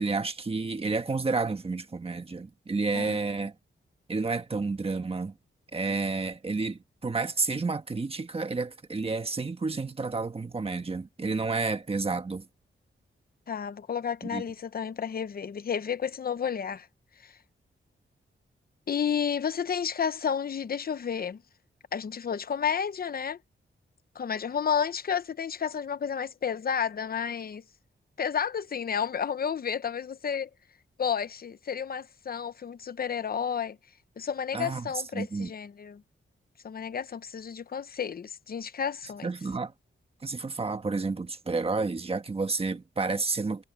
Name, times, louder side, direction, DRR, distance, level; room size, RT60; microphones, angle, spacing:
voice 1, 0.0-3.5 4.1-5.3 5.7-12.5 14.3-14.4 34.5-35.5 39.2-39.7 40.2-43.6, right 3 dB, 30° right, 1.4 m, -30 dB
voice 2, 13.5-16.9 17.2-17.4 18.9-21.4 21.9-23.4 24.1-27.6 28.2-30.5 31.0-33.8 34.2-36.0 36.6-39.3, left 7 dB, 45° left, 0.8 m, -31 dB
wide cardioid pair, 140°, 21 cm